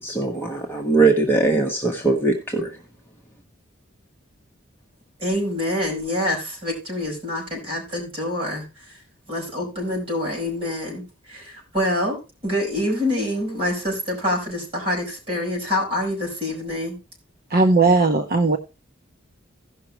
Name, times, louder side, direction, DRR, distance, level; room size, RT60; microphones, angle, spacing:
voice 1, 0.0-2.8, right 3 dB, 10° left, -1 dB, 1.3 m, -21 dB
voice 2, 5.2-9.0 9.3-12.2 12.4-17.0, left 1 dB, 30° right, -3 dB, 5.6 m, -26 dB
voice 3, 17.5-18.6, right 3 dB, 50° right, 4 dB, 0.8 m, -17 dB
16.5 x 6.0 x 3.1 m, 0.27 s
head